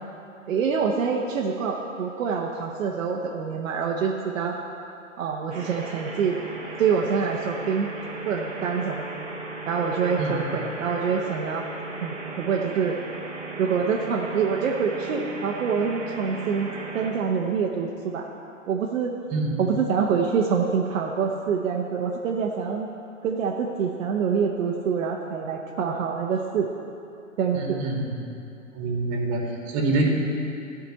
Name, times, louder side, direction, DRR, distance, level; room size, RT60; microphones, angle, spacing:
voice 1, 0.5-4.6 5.2-6.4 6.8-7.9 8.2-9.0 9.7-11.7 12.0-13.0 13.6-18.3 18.7-19.1 19.6-22.9 23.2-26.7 27.4-27.8, right 6 dB, 70° right, 0 dB, 1.0 m, -26 dB
sound 1, 5.5-17.1, right 3 dB, 20° right, 1.9 m, -36 dB
voice 2, 19.3-19.6 27.5-28.1 28.7-30.0, right 2 dB, 35° right, -1 dB, 2.4 m, -26 dB
11.5 x 5.1 x 7.8 m, 2.7 s
hypercardioid pair, 130°, 40 cm